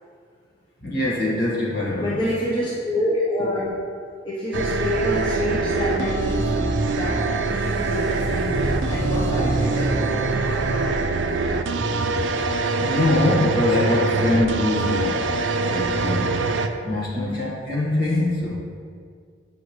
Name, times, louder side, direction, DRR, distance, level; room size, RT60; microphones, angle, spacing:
voice 1, 0.8-2.2 12.8-16.4 16.8-18.5, left 2 dB, 50° left, -6 dB, 1.7 m, -23 dB
voice 2, 2.0-3.7 4.2-10.0 17.1-17.4, equal, 25° left, -8 dB, 0.8 m, -27 dB
sound 1, 4.5-16.7, right 3 dB, 65° right, 0.4 m, -24 dB
sound 2, 8.1-10.9, right 1 dB, 75° left, 1.5 m, -28 dB
7.6 x 5.1 x 3.2 m, 2.1 s
head